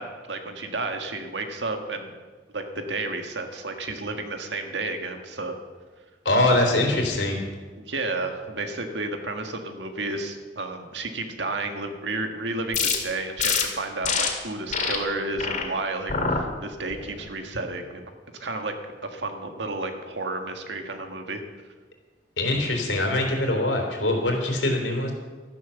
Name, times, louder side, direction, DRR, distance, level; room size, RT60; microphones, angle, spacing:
voice 1, 0.0-2.1 2.5-5.6 6.3-6.6 7.8-18.0 18.4-18.7 19.0-21.4, right 2 dB, 75° right, 5 dB, 1.8 m, -32 dB
voice 2, 6.3-7.4 22.4-25.1, left 2 dB, 80° left, 3 dB, 3.5 m, -23 dB
sound 1, 12.7-13.0 13.4-13.6 14.0-14.3 14.7-15.0 15.4-15.6 16.1-16.4 16.9-17.3, left 5 dB, 45° left, 2.2 m, -25 dB
13.5 x 11.0 x 7.0 m, 1.4 s
head